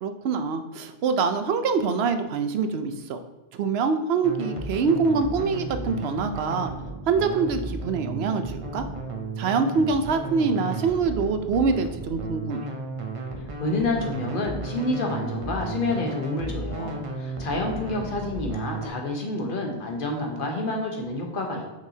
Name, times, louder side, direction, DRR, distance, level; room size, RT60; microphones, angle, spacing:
voice 1, 0.0-3.2 3.5-6.7 7.1-8.9 9.4-12.7, right 5 dB, 85° right, 8 dB, 0.9 m, -25 dB
sound 1, 4.2-18.9, right 2 dB, 35° right, 0.7 m, -34 dB
voice 2, 13.6-21.8, left 2 dB, 60° left, 2 dB, 1.2 m, -28 dB
6.0 x 5.6 x 2.8 m, 1.1 s
omnidirectional pair, 1.0 m